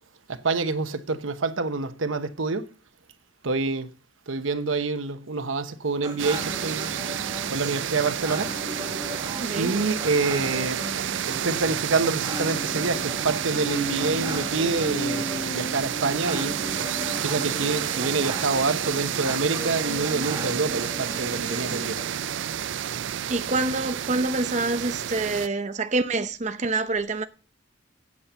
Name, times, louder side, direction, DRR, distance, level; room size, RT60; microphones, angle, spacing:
voice 1, 0.3-2.7 3.4-3.9 4.3-6.9 7.5-8.6 9.6-10.8 11.3-16.6 17.2-22.1, right 3 dB, 85° right, 1.0 m, -27 dB
sound 1, 6.0-22.0, right 1 dB, 20° right, 2.0 m, -37 dB
sound 2, 6.2-25.5, right 9 dB, 70° right, 0.4 m, -30 dB
voice 2, 9.4-9.7 23.3-27.2, right 3 dB, 35° right, 0.8 m, -26 dB
sound 3, 11.2-21.0, equal, 25° left, 1.6 m, -38 dB
8.5 x 8.5 x 6.9 m
head